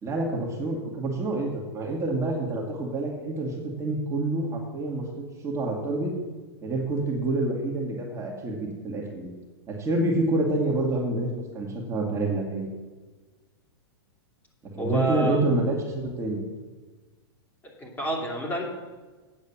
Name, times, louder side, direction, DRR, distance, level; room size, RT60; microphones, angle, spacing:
voice 1, 0.0-5.0 5.4-6.1 6.6-9.3 9.7-11.3 11.5-12.7 14.7-16.4, right 2 dB, 20° right, -1 dB, 2.2 m, -27 dB
voice 2, 14.8-15.4 17.8-18.7, right 1 dB, 15° left, -2 dB, 2.8 m, -28 dB
8.9 x 7.2 x 7.2 m, 1.3 s
hypercardioid pair, 120°, 14 cm